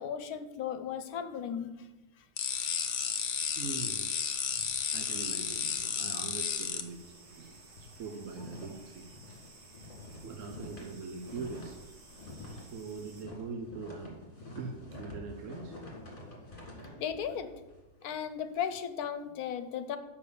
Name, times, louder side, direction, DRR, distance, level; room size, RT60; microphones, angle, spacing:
voice 1, 0.0-1.9 2.6-2.7 17.0-17.5 18.0-20.0, left 8 dB, 75° left, 10 dB, 1.2 m, -36 dB
sound 1, 2.4-6.8, left 7 dB, 55° left, 0.8 m, -33 dB
sound 2, 2.5-13.2, right 2 dB, 75° right, 2.2 m, -55 dB
voice 2, 3.5-4.1 4.9-9.0 10.2-11.8 12.7-14.2 14.6-15.8 17.3-17.4, right 4 dB, 60° right, 4 dB, 1.0 m, -42 dB
sound 3, 4.4-6.7 7.0-7.1 7.5-18.6, left 1 dB, 35° left, 2.0 m, -49 dB
6.7 x 5.4 x 6.8 m, 1.0 s
omnidirectional pair, 1.6 m